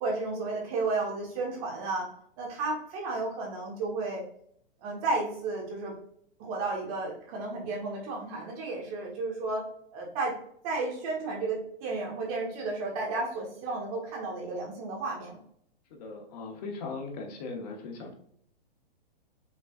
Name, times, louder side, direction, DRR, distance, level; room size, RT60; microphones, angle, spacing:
voice 1, 0.0-2.1 2.4-4.2 4.8-5.9 6.4-9.6 9.9-10.4 10.6-15.4, right 3 dB, 35° right, -1 dB, 1.5 m, -32 dB
voice 2, 16.0-18.1, left 3 dB, 40° left, 3 dB, 1.0 m, -38 dB
5.2 x 3.8 x 2.5 m, 0.66 s
hypercardioid pair, 135°, 31 cm